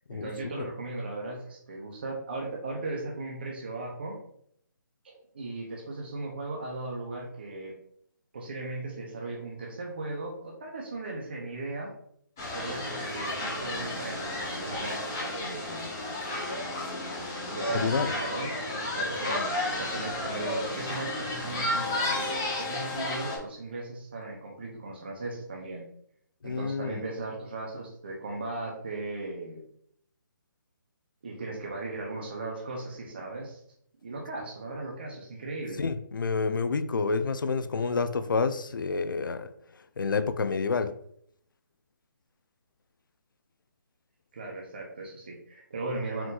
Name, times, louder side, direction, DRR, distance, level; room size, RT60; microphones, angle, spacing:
voice 1, 0.1-4.2 5.0-7.8 8.3-11.9 12.5-15.9 17.5-25.9 26.4-29.6 31.2-33.6 34.0-35.8 44.3-46.3, right 2 dB, 30° right, 0.6 m, -37 dB
sound 1, 12.4-23.4, left 1 dB, 10° left, 0.4 m, -32 dB
voice 2, 17.7-18.1 26.4-27.0 35.8-39.5 40.0-40.9, left 4 dB, 75° left, 0.4 m, -28 dB
4.4 x 2.5 x 3.8 m
hypercardioid pair, 180°, 11 cm